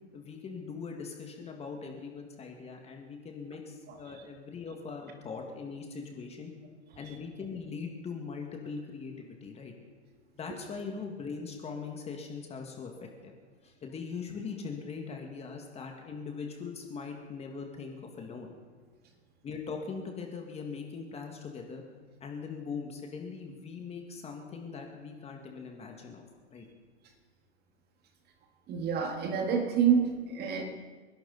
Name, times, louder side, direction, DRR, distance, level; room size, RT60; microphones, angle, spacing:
voice 1, 0.1-6.5 7.0-9.7 10.3-13.3 13.6-18.5 19.4-21.8 22.2-26.2 26.5-26.7, left 5 dB, 20° left, 2 dB, 2.0 m, -41 dB
voice 2, 28.7-30.6, right 7 dB, 30° right, 4 dB, 2.0 m, -27 dB
28.5 x 11.5 x 4.1 m, 1.4 s
hypercardioid pair, 130°, 34 cm